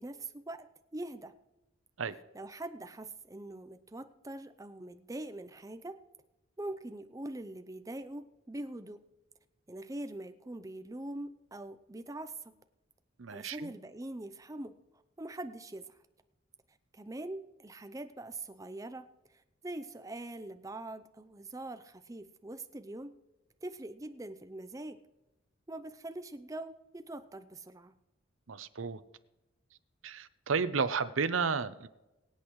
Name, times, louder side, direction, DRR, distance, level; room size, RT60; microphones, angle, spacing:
voice 1, 0.0-1.3 2.3-6.0 6.6-9.0 9.7-12.3 13.3-14.7 15.2-16.0 16.9-23.1 23.6-25.0 25.7-27.9, right 1 dB, 15° right, 9 dB, 0.6 m, -43 dB
voice 2, 13.2-13.7 28.5-29.0 30.0-31.9, right 5 dB, 80° right, 12 dB, 0.7 m, -32 dB
23.5 x 8.4 x 3.2 m, 1.0 s
head